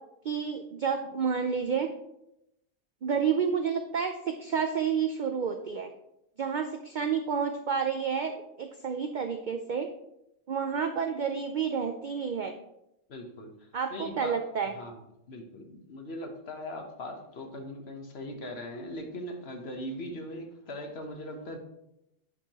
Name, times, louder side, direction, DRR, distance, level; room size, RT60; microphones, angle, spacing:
voice 1, 0.2-1.9 3.0-5.9 6.4-9.9 10.5-12.5 13.7-14.7, right 6 dB, 80° right, 6 dB, 0.4 m, -30 dB
voice 2, 13.1-14.4 14.7-21.6, left 1 dB, 55° left, 4 dB, 1.2 m, -40 dB
9.9 x 4.5 x 2.9 m, 0.84 s
omnidirectional pair, 1.4 m